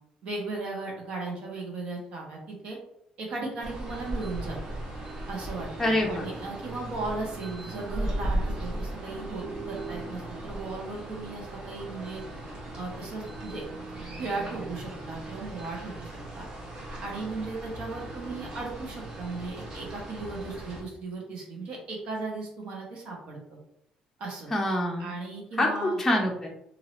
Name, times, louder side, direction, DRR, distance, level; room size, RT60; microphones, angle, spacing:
voice 1, 0.2-2.8 3.2-4.8 5.3-12.2 12.8-13.6 14.2-16.5 17.0-23.4 24.2-24.5 25.0-26.0, right 3 dB, 65° right, -1 dB, 1.1 m, -36 dB
sound 1, 3.6-20.8, right 1 dB, 40° right, 0.9 m, -37 dB
voice 2, 5.8-6.3 24.5-25.1 25.6-26.5, left 1 dB, 10° left, -1 dB, 0.6 m, -26 dB
2.7 x 2.6 x 3.1 m, 0.79 s
cardioid pair, 135°, 2 cm